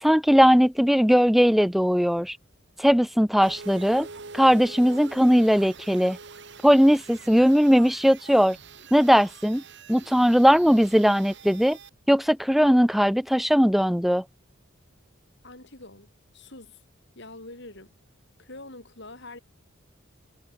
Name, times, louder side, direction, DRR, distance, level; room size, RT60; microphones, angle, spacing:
voice 1, 0.0-2.4 2.8-4.1 4.3-6.2 6.6-8.6 8.9-9.6 9.9-11.8 12.1-14.2, equal, ahead, 0.6 m, -19 dB
sound 1, 3.4-11.9, right 4 dB, 55° right, 1.7 m, -45 dB
voice 2, 15.4-16.8 17.1-17.9 18.4-19.4, left 2 dB, 55° left, 6.2 m, -45 dB
head